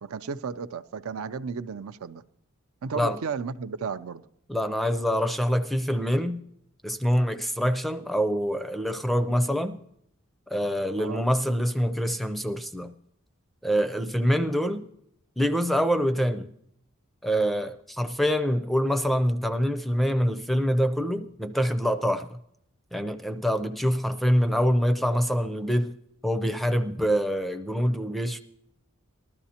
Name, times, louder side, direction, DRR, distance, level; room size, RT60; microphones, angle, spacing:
voice 1, 0.0-2.2 2.8-4.2 11.0-11.3, right 5 dB, 80° right, 0.5 m, -34 dB
voice 2, 4.5-6.4 6.8-9.8 10.5-12.9 13.6-14.9 15.4-16.5 17.2-22.4 22.9-25.9 26.2-28.4, equal, ahead, 0.4 m, -25 dB
19.5 x 12.5 x 2.8 m
head